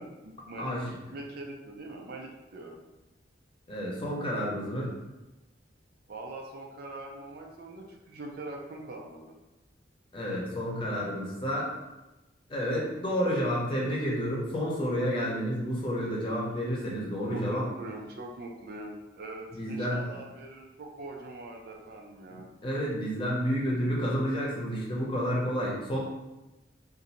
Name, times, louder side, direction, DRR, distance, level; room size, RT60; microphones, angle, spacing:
voice 1, 0.0-2.8 6.1-9.4 17.3-22.5, right 2 dB, 55° right, 1 dB, 0.5 m, -43 dB
voice 2, 0.6-0.9 3.7-4.9 10.1-11.7 12.5-17.7 19.5-20.1 22.3-26.0, equal, 30° left, -4 dB, 0.8 m, -30 dB
2.7 x 2.6 x 4.1 m, 1.0 s
head